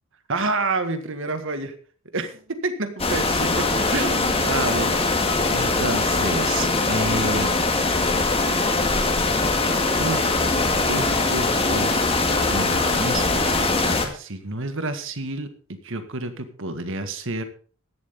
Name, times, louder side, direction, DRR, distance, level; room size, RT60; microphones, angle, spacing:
voice 1, 0.3-1.7 2.1-7.6 10.0-15.5 15.8-17.4, right 2 dB, 60° right, 9 dB, 1.9 m, -29 dB
sound 1, 3.0-14.1, left 3 dB, 25° left, 2.2 m, -22 dB
15.0 x 12.0 x 3.7 m, 0.41 s
head